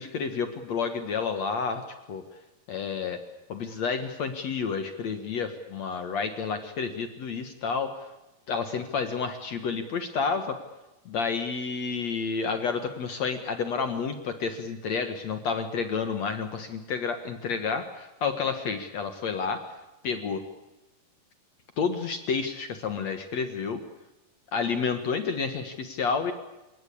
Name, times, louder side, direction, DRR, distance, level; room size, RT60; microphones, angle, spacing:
voice 1, 0.0-1.8 2.1-2.2 2.7-3.2 3.5-7.9 8.5-10.6 11.1-19.6 20.0-20.4 21.8-23.8 24.5-26.3, left 5 dB, 55° left, 8 dB, 2.1 m, -30 dB
30.0 x 18.5 x 8.6 m, 1.0 s
omnidirectional pair, 4.6 m